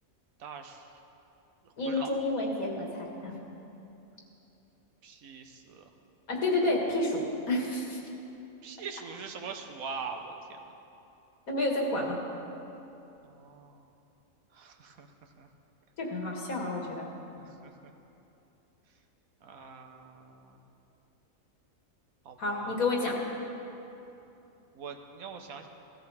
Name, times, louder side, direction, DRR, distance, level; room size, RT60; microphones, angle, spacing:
voice 1, 0.4-0.9 1.6-2.1 5.0-5.9 8.6-10.7 13.2-13.9 14.5-15.1 15.4-15.5 17.3-17.9 19.4-20.6 22.2-22.8 24.7-25.7, right 5 dB, 80° right, 4 dB, 1.4 m, -43 dB
voice 2, 1.8-3.4 6.3-8.0 11.5-12.2 16.0-17.1 22.4-23.2, left 2 dB, 90° left, -1 dB, 2.3 m, -30 dB
16.0 x 13.5 x 3.5 m, 2.9 s
omnidirectional pair, 1.5 m